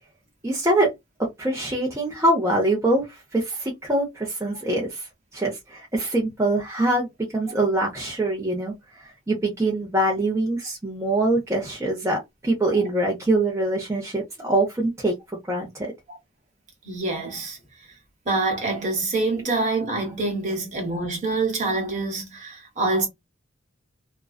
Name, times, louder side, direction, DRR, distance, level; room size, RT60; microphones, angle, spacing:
voice 1, 0.4-0.9 1.4-5.1 5.3-7.1 7.3-8.7 9.3-12.2 12.4-15.1 15.5-15.9, right 1 dB, 15° right, 0.6 m, -23 dB
voice 2, 16.8-17.6 18.3-23.1, right 3 dB, 35° right, 1.1 m, -26 dB
2.5 x 2.2 x 2.3 m
head